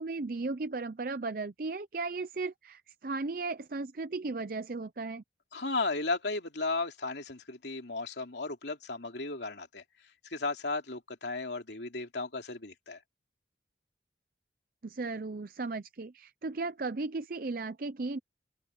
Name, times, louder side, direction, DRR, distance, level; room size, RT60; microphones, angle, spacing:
voice 1, 0.0-5.2 14.8-18.2, right 3 dB, 50° right, 0.6 m, -36 dB
voice 2, 5.5-9.8 10.2-13.0, left 3 dB, 80° left, 2.9 m, -35 dB
open air
head